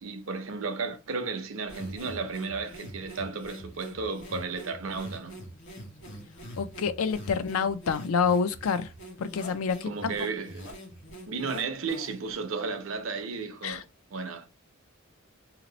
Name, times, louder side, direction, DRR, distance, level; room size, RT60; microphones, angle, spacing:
voice 1, 0.0-5.4 9.8-10.6 11.3-13.8 14.1-14.5, right 4 dB, 70° right, 0.6 m, -34 dB
sound 1, 1.7-12.3, equal, 60° left, 1.3 m, -44 dB
voice 2, 6.6-8.9 9.2-10.1 13.6-13.8, left 5 dB, 85° left, 0.4 m, -27 dB
2.8 x 2.0 x 3.8 m
head